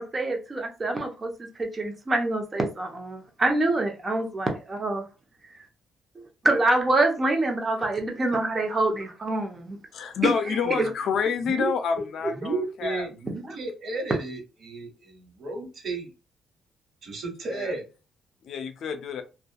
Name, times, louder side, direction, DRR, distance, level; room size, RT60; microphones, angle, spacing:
voice 1, 0.0-5.0 6.4-9.8 10.2-10.3 10.8-10.9 12.2-12.3 13.4-13.5, right 2 dB, 30° right, 0.8 m, -26 dB
voice 2, 9.9-13.1 17.5-17.8 18.4-19.2, left 6 dB, 70° left, 0.4 m, -28 dB
voice 3, 12.3-16.1 17.0-17.8, right 3 dB, 60° right, 1.1 m, -33 dB
2.7 x 2.3 x 2.2 m
cardioid pair, 90°, 0 cm